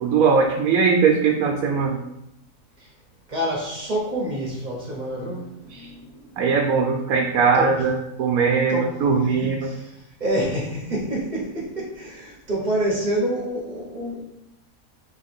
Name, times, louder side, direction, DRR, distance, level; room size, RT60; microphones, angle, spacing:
voice 1, 0.0-2.0 5.7-5.9 6.4-9.7, right 5 dB, 80° right, 1 dB, 1.1 m, -20 dB
voice 2, 3.3-6.4 7.5-7.8 8.7-8.9 9.2-14.2, right 1 dB, 35° right, -2 dB, 0.9 m, -28 dB
3.9 x 3.1 x 4.3 m, 0.84 s
omnidirectional pair, 1.5 m